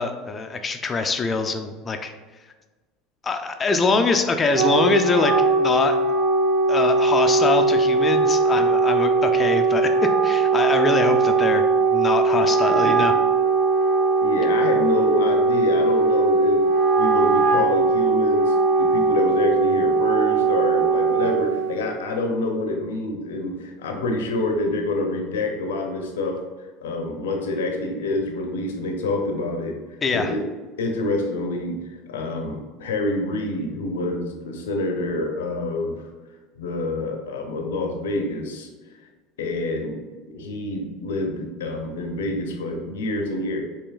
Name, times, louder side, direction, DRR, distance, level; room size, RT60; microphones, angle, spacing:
voice 1, 0.0-2.1 3.2-6.0 6.7-11.6 11.9-13.1 30.0-30.3, left 4 dB, 30° left, 6 dB, 0.4 m, -23 dB
Wind instrument woodwind instrument, 4.3-21.8, right 3 dB, 60° right, 0.6 m, -20 dB
voice 2, 12.7-13.3 14.2-16.6 17.0-26.4 26.8-30.4 30.8-31.8 32.1-36.0 36.6-38.7 39.4-40.0 40.3-43.6, left 2 dB, 90° left, 3 dB, 0.6 m, -27 dB
4.6 x 2.9 x 2.3 m, 1.3 s
hypercardioid pair, 90°, 0 cm